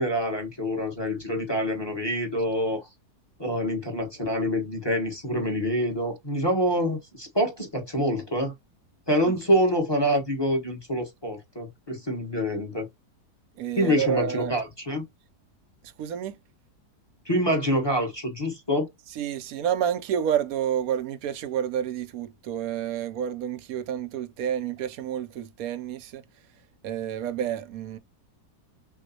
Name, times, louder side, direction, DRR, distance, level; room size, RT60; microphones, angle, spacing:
voice 1, 0.0-2.8 3.4-8.5 9.1-12.9 13.8-15.0 17.2-18.9, equal, 15° left, 1.1 m, -26 dB
voice 2, 13.6-14.6 15.8-16.4 19.1-26.2 26.8-28.0, right 9 dB, 65° right, 1.0 m, -29 dB
6.0 x 2.3 x 2.7 m
omnidirectional pair, 1.8 m